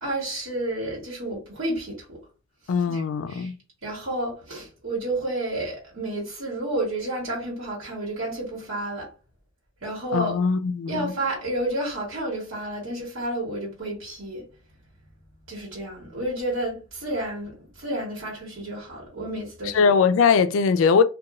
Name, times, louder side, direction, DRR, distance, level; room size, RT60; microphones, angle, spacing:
voice 1, 0.0-2.2 2.9-3.0 3.3-3.5 3.8-9.1 9.8-10.4 10.9-14.4 15.5-19.9, right 1 dB, 80° right, 1.2 m, -30 dB
voice 2, 2.7-3.5 10.1-11.1 19.7-21.0, left 5 dB, 75° left, 0.3 m, -20 dB
2.9 x 2.2 x 2.3 m
head